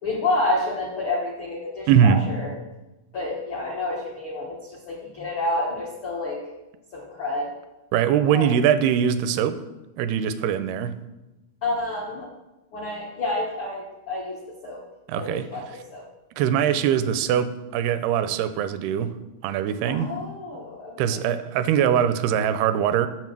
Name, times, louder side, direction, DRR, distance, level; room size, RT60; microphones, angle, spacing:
voice 1, 0.0-2.5 3.1-6.5 6.9-7.5 8.3-8.5 11.6-12.3 12.7-14.8 15.1-16.0 19.8-21.3, left 2 dB, 85° left, -2 dB, 1.1 m, -29 dB
voice 2, 1.9-2.2 7.9-9.6 10.0-11.0 15.1-15.5 16.4-19.1 19.4-20.1 21.0-23.1, right 9 dB, 90° right, 11 dB, 2.6 m, -22 dB
8.0 x 7.2 x 6.0 m, 1.0 s
omnidirectional pair, 4.4 m